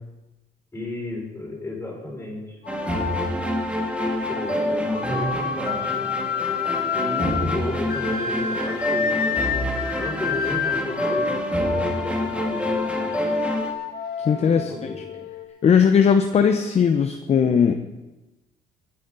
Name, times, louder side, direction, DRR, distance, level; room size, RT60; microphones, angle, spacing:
voice 1, 0.7-2.6 4.0-5.9 6.9-9.5 10.0-13.4 14.3-15.2, left 2 dB, 15° left, -3 dB, 5.4 m, -33 dB
sound 1, 2.6-15.4, left 7 dB, 70° left, 1.6 m, -30 dB
sound 2, 2.7-13.7, equal, 5° right, 2.0 m, -27 dB
voice 2, 14.2-14.9 15.6-17.7, left 7 dB, 40° left, 7 dB, 0.7 m, -18 dB
19.5 x 9.4 x 3.9 m, 1.1 s
cardioid pair, 110°, 17 cm